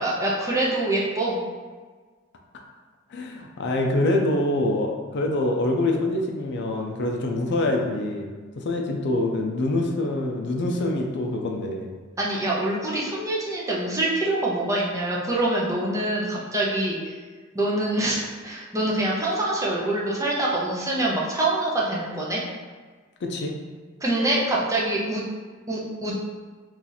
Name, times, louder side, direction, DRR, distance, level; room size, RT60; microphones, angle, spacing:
voice 1, 0.0-1.4 12.2-17.1 17.5-22.4 24.0-25.2 25.7-26.1, right 1 dB, 15° right, -5 dB, 0.6 m, -25 dB
voice 2, 3.1-11.9 23.2-23.6, left 2 dB, 55° left, 2 dB, 0.4 m, -25 dB
2.8 x 2.5 x 3.9 m, 1.4 s
head